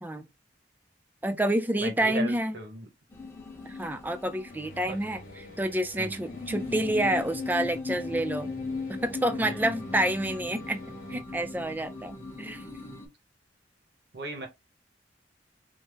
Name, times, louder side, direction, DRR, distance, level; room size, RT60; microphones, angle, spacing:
voice 1, 1.2-2.6 3.7-8.5 8.9-10.8 11.1-12.6, right 1 dB, 10° right, 0.4 m, -28 dB
voice 2, 1.8-2.9 4.9-5.0 6.0-6.2 9.4-9.7 14.1-14.5, right 3 dB, 65° right, 0.9 m, -37 dB
sound 1, 3.1-5.0 5.3-5.4 6.0-13.1, left 3 dB, 15° left, 0.7 m, -38 dB
sound 2, 4.5-11.2, left 1 dB, 55° left, 1.0 m, -48 dB
3.3 x 2.0 x 3.3 m
head